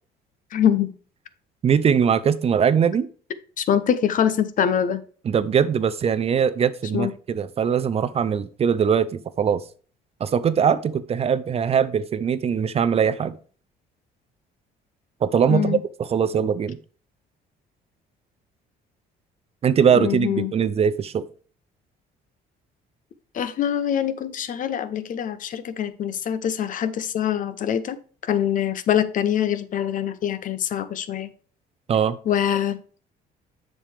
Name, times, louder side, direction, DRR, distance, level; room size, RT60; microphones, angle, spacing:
voice 1, 0.5-0.9 3.6-5.0 6.9-7.1 15.5-15.8 19.9-20.5 23.3-28.0 28.2-31.3 32.3-32.8, left 9 dB, 50° left, 13 dB, 0.8 m, -24 dB
voice 2, 1.6-3.1 5.3-9.6 10.2-13.4 15.2-15.8 16.1-16.8 19.6-21.3 31.9-32.2, right 7 dB, 35° right, 15 dB, 0.5 m, -21 dB
7.3 x 6.6 x 3.3 m, 0.41 s
cardioid pair, 110°, 17 cm